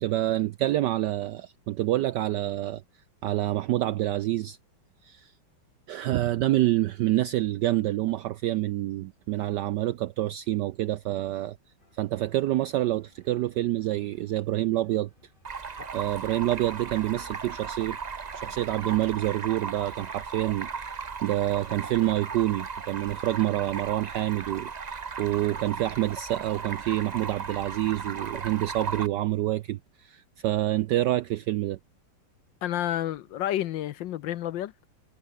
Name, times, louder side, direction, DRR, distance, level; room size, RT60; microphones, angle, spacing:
voice 1, 0.0-2.8 3.2-4.6 5.0-5.3 5.9-11.6 11.9-15.1 15.9-18.0 18.3-31.8, right 15 dB, 75° right, 1.0 m, -27 dB
sound 1, 11.8-25.3, left 1 dB, 20° left, 7.6 m, -63 dB
Stream, 15.4-29.1, right 5 dB, 60° right, 0.4 m, -37 dB
voice 2, 32.6-34.9, left 12 dB, 70° left, 1.3 m, -30 dB
omnidirectional pair, 2.3 m